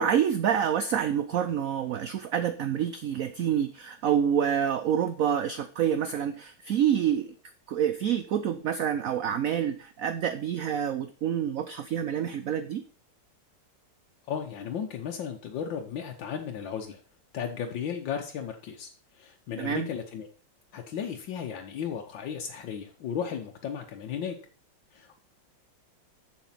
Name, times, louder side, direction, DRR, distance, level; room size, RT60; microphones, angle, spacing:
voice 1, 0.0-7.3 7.7-12.8 19.6-19.9, right 9 dB, 65° right, 10 dB, 0.9 m, -27 dB
voice 2, 14.3-17.0 17.3-18.9 19.1-20.3 20.7-24.4 24.9-25.2, left 8 dB, 85° left, 3 dB, 1.7 m, -35 dB
7.3 x 7.2 x 5.6 m, 0.40 s
omnidirectional pair, 2.0 m